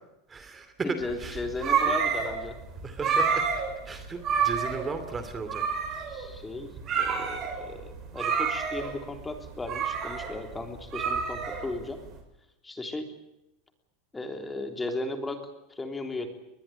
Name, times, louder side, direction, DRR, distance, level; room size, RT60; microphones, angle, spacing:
voice 1, 0.3-1.7 2.8-3.4 3.9-6.1, right 4 dB, 20° right, 9 dB, 2.6 m, -36 dB
voice 2, 0.8-2.6 6.1-6.7 7.0-12.0 12.6-13.1 14.1-15.4 15.8-16.3, left 2 dB, 10° left, 6 dB, 3.4 m, -35 dB
sound 1, 1.1-12.1, right 6 dB, 35° right, 6.8 m, -29 dB
22.0 x 21.0 x 9.0 m, 0.90 s
supercardioid pair, 140°, 0 cm